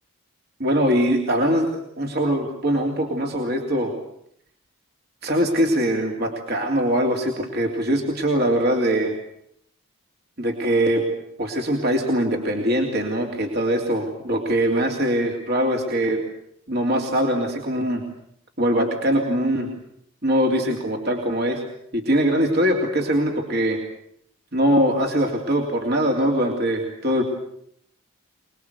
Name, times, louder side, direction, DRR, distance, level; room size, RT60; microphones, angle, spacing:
voice 1, 0.6-3.9 5.2-9.1 10.4-11.1 11.4-16.2 16.7-18.0 18.6-19.7 20.2-21.6 21.9-23.8 24.5-27.2, equal, 45° right, 1 dB, 3.1 m, -22 dB
26.5 x 20.5 x 8.2 m, 0.70 s
head